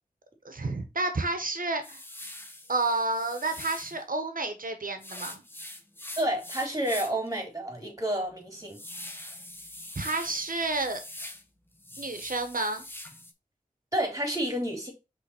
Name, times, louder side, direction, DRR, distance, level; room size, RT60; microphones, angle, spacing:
voice 1, 0.4-2.0 2.7-5.4 9.9-11.0 12.0-12.8, right 3 dB, 75° right, 1.4 m, -30 dB
sound 1, 1.8-4.0 5.0-7.3 7.7-7.8 8.2-11.4 11.7-13.3, left 1 dB, 15° left, 1.0 m, -43 dB
voice 2, 6.2-8.8 13.9-14.9, right 1 dB, 25° right, 3.3 m, -30 dB
5.9 x 3.8 x 4.5 m
wide cardioid pair, 55°, 14 cm